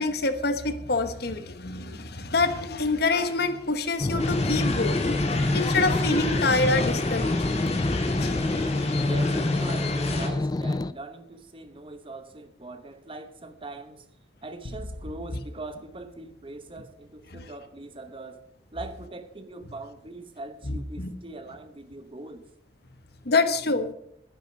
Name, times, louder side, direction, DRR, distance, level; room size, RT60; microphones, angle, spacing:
voice 1, 0.0-5.2 5.5-7.5 8.2-8.4 8.8-9.0 17.3-17.4 20.6-21.1 23.2-23.9, left 3 dB, 60° left, 1.2 m, -26 dB
sound 1, 4.0-10.9, left 2 dB, 20° left, 0.4 m, -26 dB
sound 2, 4.2-10.3, left 2 dB, 35° left, 2.1 m, -32 dB
voice 2, 9.0-14.1 14.4-18.4 18.7-22.5, right 2 dB, 30° right, 1.0 m, -41 dB
sound 3, 14.6-17.1, left 1 dB, 75° left, 1.0 m, -44 dB
11.0 x 10.0 x 6.8 m
head